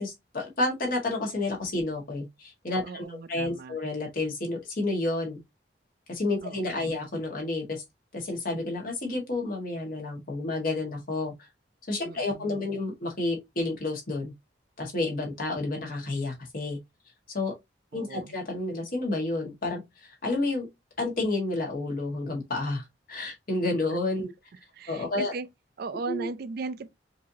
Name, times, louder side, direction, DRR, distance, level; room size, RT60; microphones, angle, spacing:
voice 1, 0.0-5.4 6.1-7.8 8.1-11.3 11.9-14.3 14.8-16.8 17.3-17.5 17.9-20.7 21.0-24.3 24.9-25.3 26.1-26.3, left 2 dB, 50° left, 1.6 m, -30 dB
voice 2, 2.8-3.8 6.4-6.9 12.0-12.7 17.9-18.3 24.7-25.5 25.8-26.9, right 3 dB, 55° right, 0.4 m, -37 dB
4.8 x 2.7 x 2.8 m
head